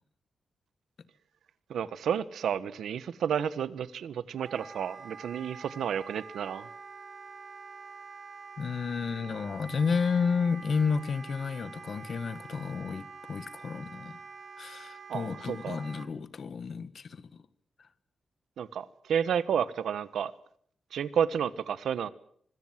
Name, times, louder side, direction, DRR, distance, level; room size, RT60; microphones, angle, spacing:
voice 1, 1.7-6.7 15.1-15.8 18.6-20.3 20.9-22.1, right 8 dB, 85° right, 1.3 m, -31 dB
Wind instrument woodwind instrument, 4.4-16.1, right 5 dB, 40° right, 1.9 m, -46 dB
voice 2, 8.6-14.2 14.6-17.4 17.8-17.9, left 5 dB, 45° left, 1.5 m, -31 dB
25.0 x 22.0 x 7.6 m
wide cardioid pair, 175°, 0 cm